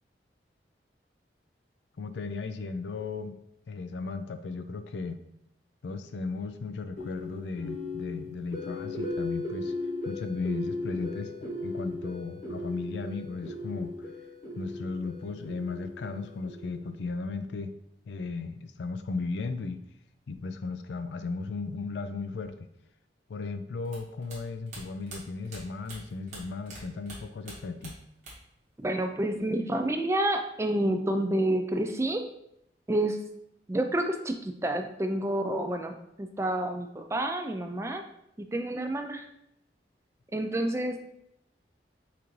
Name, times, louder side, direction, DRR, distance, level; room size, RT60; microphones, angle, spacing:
voice 1, 2.0-3.4 3.7-5.2 5.8-9.7 10.1-14.1 14.6-17.7 18.1-19.8 20.3-22.7 23.3-28.0, left 4 dB, 80° left, 10 dB, 0.4 m, -36 dB
sound 1, 7.0-17.1, left 2 dB, 45° left, 1.0 m, -37 dB
sound 2, 23.9-26.8 27.1-28.6 28.8-29.6, right 2 dB, 40° right, 1.5 m, -45 dB
voice 2, 28.8-32.2 32.9-33.2 33.7-38.0 38.5-39.3 40.3-41.0, right 1 dB, 15° right, 5 dB, 0.3 m, -29 dB
5.7 x 2.6 x 3.1 m, 0.78 s
head